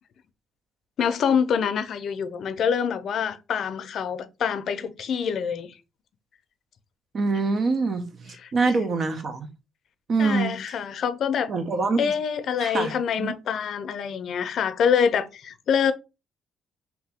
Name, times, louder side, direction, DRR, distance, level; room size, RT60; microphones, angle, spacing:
voice 1, 1.0-5.7 8.4-8.5 10.2-11.5 12.0-15.9, left 7 dB, 65° left, 0.5 m, -25 dB
voice 2, 7.1-9.5 10.1-10.8 11.5-12.1 12.6-13.3, right 3 dB, 50° right, 0.8 m, -25 dB
3.0 x 2.8 x 3.5 m
cardioid pair, 90°, 0 cm